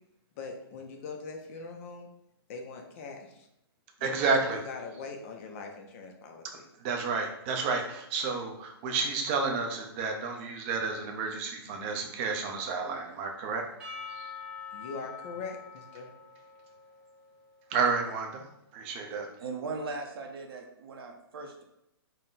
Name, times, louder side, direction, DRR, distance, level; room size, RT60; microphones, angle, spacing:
voice 1, 0.4-2.1 2.5-3.5 4.0-6.4 14.7-16.1, left 4 dB, 30° left, 3 dB, 0.4 m, -42 dB
voice 2, 4.0-4.6 6.8-13.6 14.2-14.3 17.7-18.4 18.7-19.3, right 4 dB, 30° right, 2 dB, 0.5 m, -30 dB
Percussion / Church bell, 13.8-18.1, left 5 dB, 5° right, 0.9 m, -45 dB
voice 3, 19.4-21.6, right 3 dB, 65° right, 3 dB, 0.7 m, -38 dB
3.9 x 2.1 x 3.9 m, 0.83 s
hypercardioid pair, 155°, 13 cm